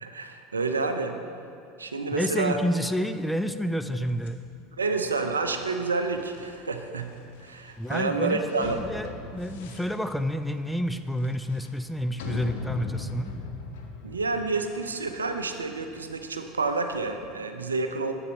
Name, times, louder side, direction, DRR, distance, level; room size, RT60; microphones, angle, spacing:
voice 1, 0.0-1.2 1.8-2.6 4.7-7.1 7.4-8.8 14.0-18.1, right 3 dB, 85° right, 7 dB, 0.5 m, -29 dB
voice 2, 2.1-4.4 7.8-13.4, equal, 5° left, 9 dB, 0.4 m, -29 dB
sound 1, 4.1-17.3, left 4 dB, 70° left, 0.8 m, -42 dB
9.5 x 7.9 x 3.0 m, 2.5 s
figure-of-eight pair, 75°, 0 cm